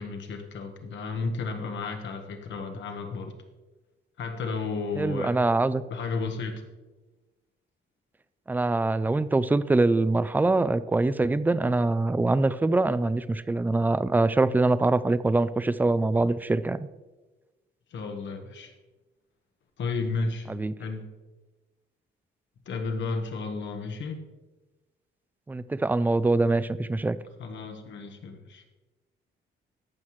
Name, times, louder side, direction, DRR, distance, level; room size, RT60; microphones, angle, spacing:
voice 1, 0.0-3.3 4.2-5.4 5.9-6.6 17.9-18.7 19.8-20.5 20.8-21.0 22.7-24.3 27.4-28.6, left 4 dB, 70° left, 5 dB, 1.3 m, -33 dB
voice 2, 5.0-5.8 8.5-16.9 20.5-20.7 25.5-27.2, right 2 dB, 10° right, 15 dB, 0.3 m, -24 dB
14.0 x 5.7 x 3.1 m, 1.2 s
cardioid pair, 90°, 20 cm